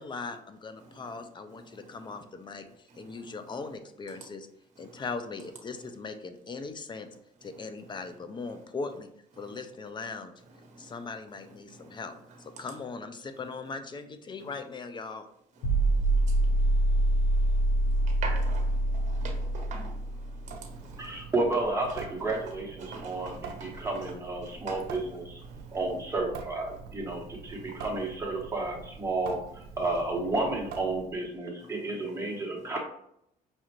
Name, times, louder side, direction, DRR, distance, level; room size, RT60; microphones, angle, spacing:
voice 1, 0.0-4.5 4.8-7.1 7.4-9.1 9.4-10.3 10.8-15.3, left 4 dB, 25° left, 9 dB, 0.4 m, -39 dB
voice 2, 0.8-2.2 2.9-3.7 4.1-4.3 4.7-5.0 5.8-5.9 7.4-8.1 8.4-8.6 9.3-9.6 10.5-12.8 13.3-13.5 14.4-14.6 15.5-21.3 21.9-22.0 22.3-22.5 22.8-24.1 24.4-26.0 26.7-26.8 27.1-28.1 29.8-30.0 31.6-32.7, right 3 dB, 45° right, 2 dB, 1.1 m, -48 dB
sound 1, 15.6-20.7, right 1 dB, 85° left, 0.9 m, -26 dB
Water tap faucet / Sink (filling or washing) / Drip, 20.4-31.3, right 5 dB, 65° right, 0.6 m, -45 dB
voice 3, 21.0-23.3 23.6-25.4 25.7-29.4 29.8-32.8, right 2 dB, 15° right, -1 dB, 1.1 m, -31 dB
5.4 x 2.4 x 3.0 m, 0.73 s
cardioid pair, 110°, 17 cm